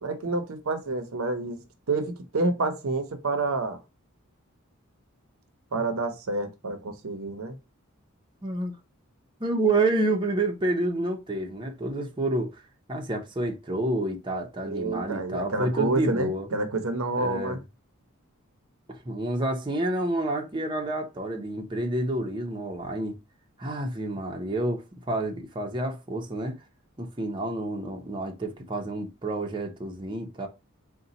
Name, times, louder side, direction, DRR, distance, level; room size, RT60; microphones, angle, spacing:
voice 1, 0.0-3.8 5.7-7.6 14.6-17.6, right 3 dB, 75° right, 0.7 m, -28 dB
voice 2, 8.4-8.7 9.4-12.6 12.9-16.5 17.2-17.6 18.9-23.1 23.6-26.6 27.0-30.5, right 2 dB, 25° right, 0.7 m, -29 dB
4.1 x 2.2 x 3.9 m
head